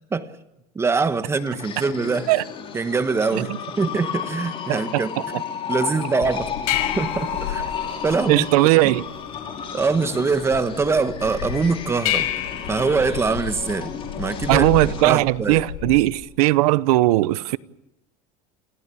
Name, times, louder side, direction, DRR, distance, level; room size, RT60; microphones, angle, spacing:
voice 1, 0.7-2.4 2.7-3.5 3.8-5.1 5.7-7.7 8.0-8.5 8.8-9.0 9.7-12.3 12.7-14.7 15.0-15.6, right 4 dB, 15° right, 1.3 m, -23 dB
sound 1, 1.3-15.0, left 7 dB, 30° left, 4.9 m, -33 dB
voice 2, 4.7-5.0 8.3-9.0 14.5-17.6, right 19 dB, 80° right, 0.8 m, -18 dB
sound 2, 6.2-16.2, left 12 dB, 80° left, 5.8 m, -31 dB
28.5 x 16.0 x 8.4 m
supercardioid pair, 145°, 19 cm